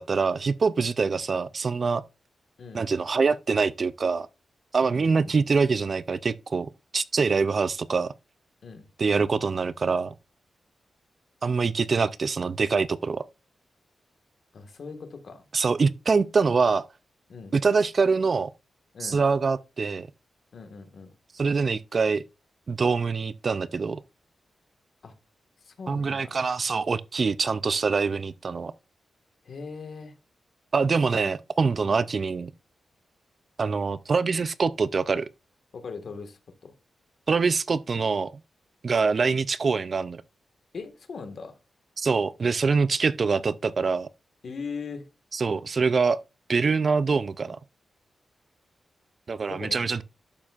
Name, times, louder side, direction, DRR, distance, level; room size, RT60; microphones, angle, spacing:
voice 1, 0.0-2.0 2.7-4.3 4.7-8.1 9.0-10.1 11.4-13.2 15.5-16.9 17.5-18.5 19.0-20.1 21.4-22.2 22.7-24.0 25.9-28.7 30.7-32.5 33.6-35.3 37.3-38.3 38.8-40.2 42.0-44.1 45.3-46.2 46.5-47.6 49.3-50.0, right 4 dB, 40° right, 0.3 m, -24 dB
voice 2, 4.8-5.3 8.6-8.8 14.5-15.5 17.3-17.5 18.9-19.2 20.5-21.1 25.0-25.1 25.6-26.4 29.4-30.1 31.8-32.0 35.7-36.7 40.7-41.5 44.4-45.0 49.5-49.9, left 5 dB, 55° left, 1.5 m, -40 dB
11.5 x 7.3 x 2.4 m
wide cardioid pair, 170°, 0 cm